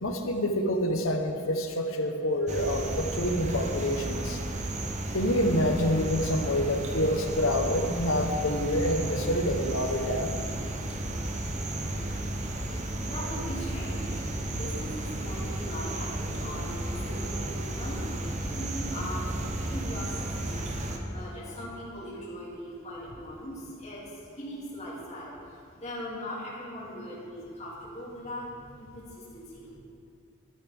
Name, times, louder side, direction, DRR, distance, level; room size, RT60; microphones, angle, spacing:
voice 1, 0.0-4.4 5.1-10.3, equal, 85° left, 4 dB, 1.0 m, -27 dB
sound 1, 2.5-21.0, right 1 dB, 35° right, 0.8 m, -33 dB
voice 2, 13.1-14.2 14.6-18.0 18.5-19.3 19.6-20.0 20.3-24.0 24.4-25.3 25.8-28.9 29.3-29.7, equal, 35° left, -7 dB, 2.5 m, -40 dB
12.5 x 9.5 x 3.5 m, 2.3 s
head